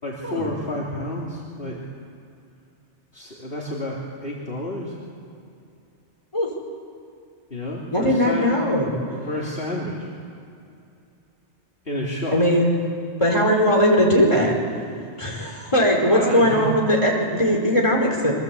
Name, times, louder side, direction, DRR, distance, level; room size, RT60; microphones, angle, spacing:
voice 1, 0.0-1.8 3.1-5.0 7.5-8.5 9.3-10.1 11.9-12.4 16.1-16.7, left 1 dB, 50° left, -4 dB, 3.6 m, -30 dB
voice 2, 7.9-8.9 12.3-12.7 13.2-14.5 15.2-18.3, equal, 25° left, -1 dB, 4.8 m, -19 dB
28.0 x 24.0 x 8.4 m, 2.5 s
omnidirectional pair, 1.2 m